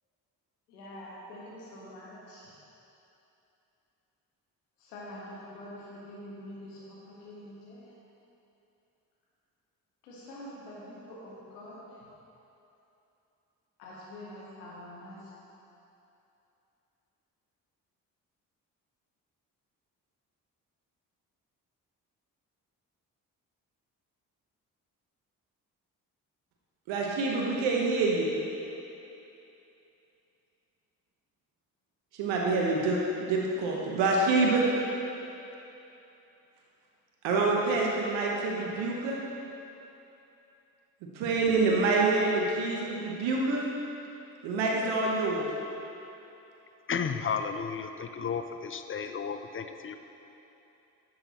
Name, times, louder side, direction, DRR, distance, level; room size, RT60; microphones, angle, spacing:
voice 1, 0.7-2.5 4.8-7.8 10.0-11.8 13.8-15.3, left 1 dB, 90° left, -6 dB, 1.4 m, -45 dB
voice 2, 26.9-28.3 32.2-33.0 33.3-34.6 37.2-39.2 41.2-43.7 44.4-45.4, right 3 dB, 75° right, -2 dB, 1.1 m, -26 dB
voice 3, 46.9-50.0, left 6 dB, 30° left, 8 dB, 0.5 m, -33 dB
10.5 x 7.4 x 3.0 m, 2.9 s
hypercardioid pair, 45°, 45 cm